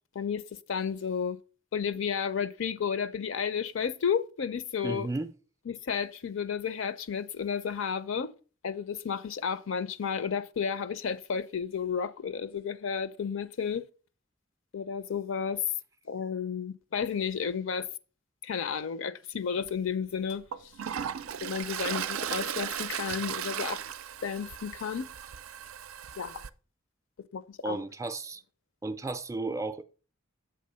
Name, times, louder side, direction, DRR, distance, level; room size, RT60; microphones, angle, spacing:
voice 1, 0.7-1.4 1.7-5.1 5.7-8.3 8.6-13.8 14.7-15.6 16.1-17.9 18.4-20.4 21.4-23.8 24.2-25.1 26.2-26.4 27.3-27.8, left 6 dB, 65° left, 0.5 m, -32 dB
voice 2, 4.8-5.3 27.6-28.4 28.8-29.8, right 2 dB, 15° right, 0.4 m, -33 dB
Toilet flush, 19.6-19.7 20.3-26.5, right 9 dB, 90° right, 0.4 m, -36 dB
7.7 x 3.4 x 5.5 m
head